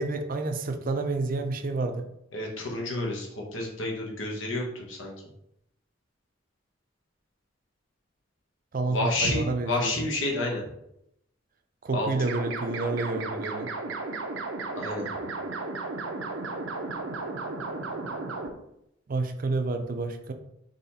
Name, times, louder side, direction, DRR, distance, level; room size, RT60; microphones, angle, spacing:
voice 1, 0.0-2.0 8.7-9.9 11.8-13.7 19.1-20.3, right 3 dB, 45° right, 6 dB, 0.5 m, -29 dB
voice 2, 2.3-5.1 8.9-10.6 11.9-12.1 14.8-15.1, left 2 dB, 85° left, -1 dB, 1.2 m, -30 dB
sound 1, 12.2-18.5, right 3 dB, 85° right, 0.7 m, -34 dB
4.1 x 3.0 x 4.1 m, 0.79 s
head